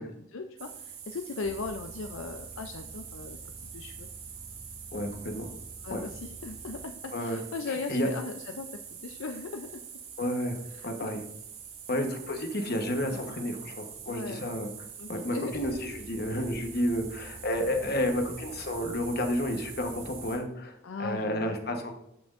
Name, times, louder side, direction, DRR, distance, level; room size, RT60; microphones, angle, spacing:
voice 1, 0.0-4.1 5.8-9.8 10.7-11.1 13.1-13.3 14.1-14.5 15.0-15.8 20.8-21.6, left 4 dB, 65° left, 5 dB, 0.5 m, -38 dB
sound 1, 0.6-20.4, right 6 dB, 70° right, 2.5 m, -44 dB
voice 2, 4.9-5.5 5.9-6.0 7.1-7.4 7.7-8.1 10.2-10.6 10.8-11.2 11.9-14.7 15.1-21.9, equal, 45° left, 5 dB, 1.1 m, -31 dB
13.5 x 6.0 x 2.5 m, 0.81 s
head